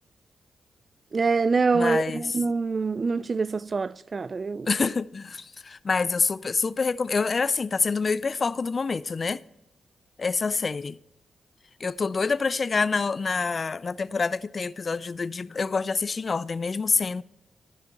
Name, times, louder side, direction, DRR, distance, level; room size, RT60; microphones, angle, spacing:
voice 1, 1.1-4.7, right 4 dB, 45° right, 0.3 m, -25 dB
voice 2, 1.7-2.4 4.7-9.4 10.2-11.0 11.8-17.2, left 4 dB, 45° left, 0.3 m, -26 dB
13.5 x 5.9 x 4.1 m
cardioid pair, 60°, 0 cm